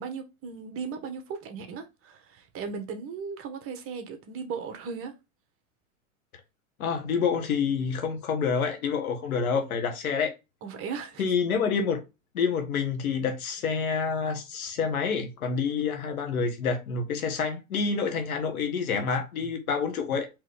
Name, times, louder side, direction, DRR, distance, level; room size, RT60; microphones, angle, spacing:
voice 1, 0.0-5.1 10.6-11.2, right 5 dB, 30° right, 1.0 m, -37 dB
voice 2, 6.8-10.3 11.2-12.0 12.3-20.3, left 5 dB, 85° left, 1.4 m, -28 dB
4.4 x 3.1 x 3.3 m
hypercardioid pair, 120°, 42 cm